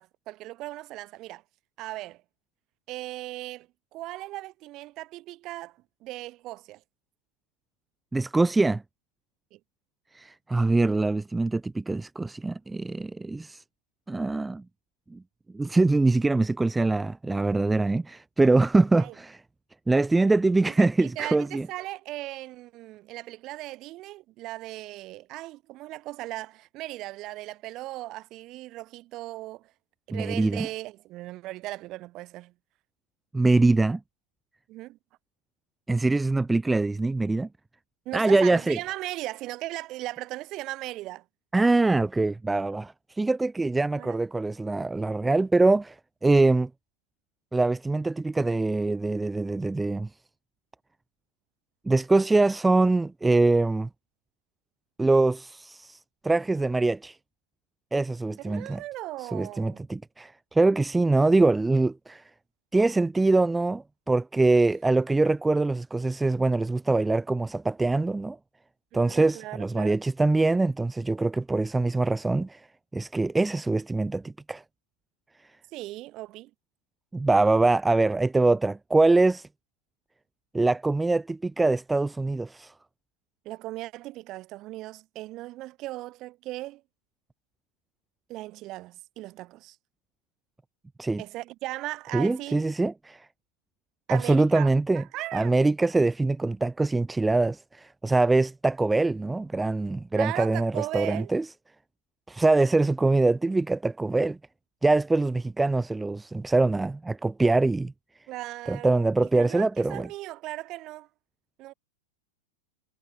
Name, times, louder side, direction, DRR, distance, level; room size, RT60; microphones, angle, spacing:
voice 1, 0.0-1.4 1.8-2.2 2.9-3.7 3.9-6.8 9.5-9.6 19.0-19.1 20.7-29.7 30.1-32.5 34.7-35.0 38.1-41.2 43.9-44.2 58.4-59.8 68.9-70.0 75.7-76.5 83.5-86.8 88.3-89.8 91.2-92.6 94.1-94.7 95.0-95.6 100.1-101.3 108.3-111.1 111.6-111.7, right 17 dB, 40° right, 5.1 m, -38 dB
voice 2, 8.1-8.8 10.1-13.6 14.1-14.6 15.1-15.2 15.5-19.4 19.9-21.7 30.1-30.7 33.3-34.0 35.9-37.5 38.1-38.8 41.5-46.7 47.5-50.1 51.8-53.9 55.0-56.0 56.2-57.2 57.9-58.8 59.2-62.2 62.7-68.4 68.9-72.6 72.9-74.6 77.1-79.5 80.5-82.7 91.0-91.2 92.1-93.3 94.1-95.0 95.3-101.4 102.3-104.4 104.8-107.9 108.7-110.1, right 3 dB, 10° right, 1.3 m, -23 dB
figure-of-eight pair, 95°, 0 cm